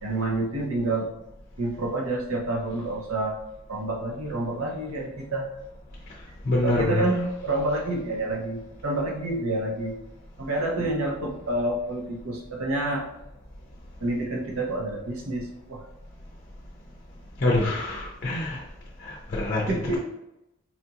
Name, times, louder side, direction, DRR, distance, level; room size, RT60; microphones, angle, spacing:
voice 1, 0.0-1.1 1.6-3.4 3.7-5.5 6.6-10.0 10.4-13.1 14.0-15.9 19.7-20.0, right 2 dB, 80° right, 0 dB, 0.8 m, -28 dB
voice 2, 6.4-7.0 17.4-18.6 19.0-19.6, left 2 dB, 40° left, -2 dB, 0.5 m, -25 dB
4.3 x 2.4 x 2.8 m, 0.89 s
head